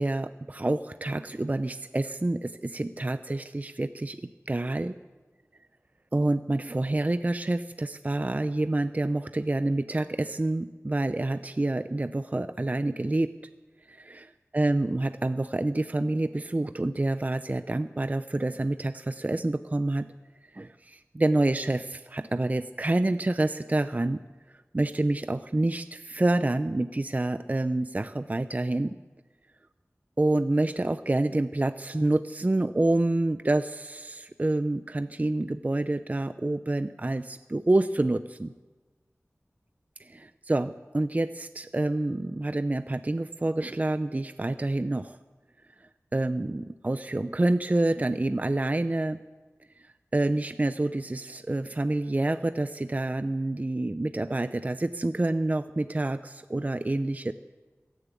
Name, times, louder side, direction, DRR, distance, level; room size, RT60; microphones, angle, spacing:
voice 1, 0.0-4.9 6.1-13.3 13.9-20.1 20.5-24.2 24.7-29.0 30.2-38.5 40.0-45.2 46.1-49.2 49.8-49.9 50.1-57.3, right 2 dB, 30° right, 11 dB, 0.5 m, -27 dB
16.0 x 11.0 x 8.3 m, 1.3 s
wide cardioid pair, 60°, 5 cm